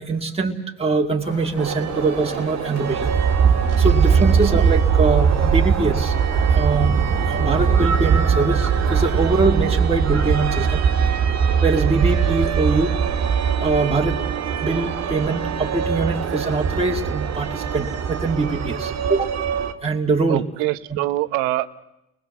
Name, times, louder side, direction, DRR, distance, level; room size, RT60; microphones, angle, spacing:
voice 1, 0.0-3.1 3.6-6.2 6.5-7.0 7.2-10.8 11.2-11.3 11.6-12.9 13.6-14.2 14.6-19.3 19.8-20.4, right 3 dB, 20° right, 0 dB, 2.4 m, -23 dB
sound 1, 1.2-9.3, left 3 dB, 85° left, 5.3 m, -37 dB
sound 2, 1.6-19.7, right 7 dB, 55° right, 2.0 m, -21 dB
voice 2, 20.3-21.7, right 17 dB, 75° right, 13 dB, 1.2 m, -24 dB
30.0 x 20.0 x 7.3 m, 0.87 s
hypercardioid pair, 65°, 32 cm